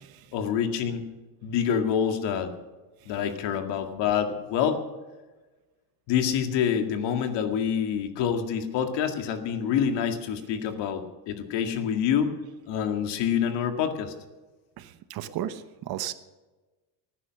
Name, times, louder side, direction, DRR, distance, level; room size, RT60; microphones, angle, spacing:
voice 1, 0.3-1.1 1.4-2.5 3.1-4.8 6.1-12.3 12.7-14.1, left 8 dB, 70° left, 6 dB, 2.1 m, -27 dB
voice 2, 14.8-16.1, right 11 dB, 55° right, 12 dB, 1.1 m, -34 dB
18.5 x 9.9 x 6.3 m, 1.2 s
cardioid pair, 140°, 45 cm